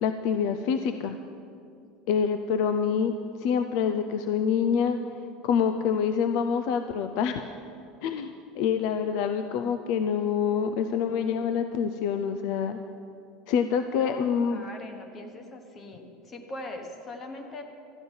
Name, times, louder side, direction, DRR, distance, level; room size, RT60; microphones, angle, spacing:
voice 1, 0.0-1.2 2.1-3.1 3.4-5.0 5.4-7.4 8.0-12.8 13.5-14.6, left 7 dB, 55° left, 8 dB, 0.5 m, -26 dB
voice 2, 14.0-17.6, left 2 dB, 25° left, 5 dB, 1.1 m, -41 dB
13.0 x 9.6 x 5.4 m, 2.4 s
cardioid pair, 165°, 0 cm